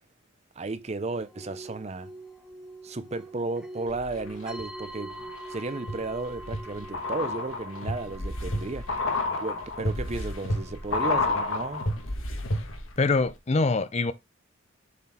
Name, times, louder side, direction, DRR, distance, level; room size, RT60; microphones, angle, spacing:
voice 1, 0.6-2.1 2.8-8.9 9.3-11.9, right 3 dB, 35° right, 0.6 m, -34 dB
sound 1, 1.1-12.1, right 1 dB, 5° right, 1.1 m, -45 dB
sound 2, 3.9-4.6 5.1-13.0 13.2-13.3, left 2 dB, 80° left, 1.6 m, -31 dB
voice 2, 13.0-14.1, left 3 dB, 35° left, 0.5 m, -24 dB
7.2 x 4.1 x 4.2 m
head